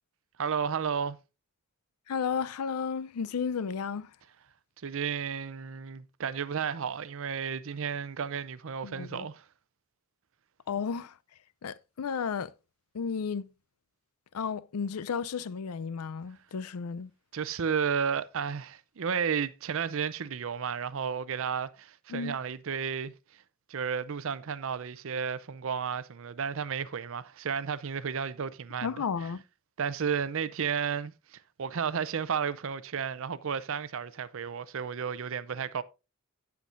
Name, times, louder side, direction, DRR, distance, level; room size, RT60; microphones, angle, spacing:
voice 1, 0.4-1.2 4.8-9.4 17.3-23.1 23.7-29.0 29.8-35.8, right 6 dB, 65° right, 0.5 m, -32 dB
voice 2, 2.1-4.1 8.8-9.3 10.7-11.2 11.6-12.5 12.9-13.5 14.3-17.1 22.1-22.4 28.8-29.4, left 6 dB, 85° left, 0.5 m, -33 dB
16.5 x 5.9 x 2.5 m
head